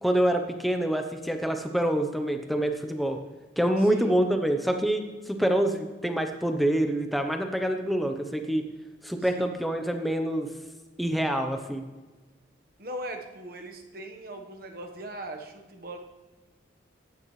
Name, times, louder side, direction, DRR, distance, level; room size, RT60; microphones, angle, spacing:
voice 1, 0.0-3.2 3.6-8.6 9.0-10.5 11.0-11.9, right 1 dB, ahead, 5 dB, 0.7 m, -26 dB
voice 2, 3.8-4.2 9.2-9.6 12.8-16.0, right 1 dB, 50° right, 3 dB, 1.2 m, -39 dB
15.0 x 9.5 x 3.2 m, 1.3 s
head